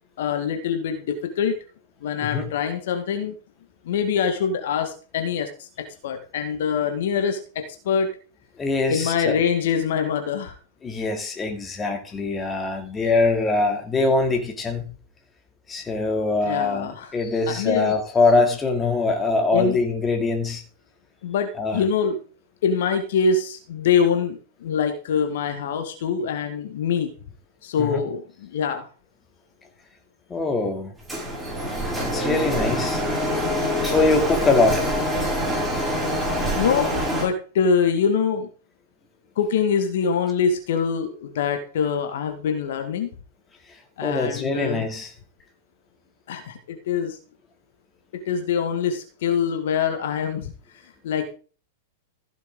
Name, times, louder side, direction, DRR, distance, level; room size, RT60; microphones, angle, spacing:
voice 1, 0.2-1.6 2.0-3.3 3.9-5.7 6.0-8.1 8.9-10.6 16.4-17.1 17.5-18.0 19.5-19.8 21.2-22.2 22.6-27.1 27.6-28.9 36.6-38.5 39.4-43.1 44.0-44.9 46.3-47.2 48.3-50.5 51.0-51.4, left 6 dB, 65° left, 6 dB, 1.8 m, -24 dB
voice 2, 8.6-9.4 10.8-14.8 15.7-20.6 21.6-21.8 27.8-28.0 30.3-30.9 32.0-33.0 33.6-35.0 35.2-36.2 44.0-45.1, left 3 dB, 20° left, 5 dB, 2.6 m, -23 dB
Printer, 31.1-37.3, equal, 5° right, 6.0 m, -25 dB
15.0 x 7.2 x 3.8 m, 0.39 s
hypercardioid pair, 100°, 0 cm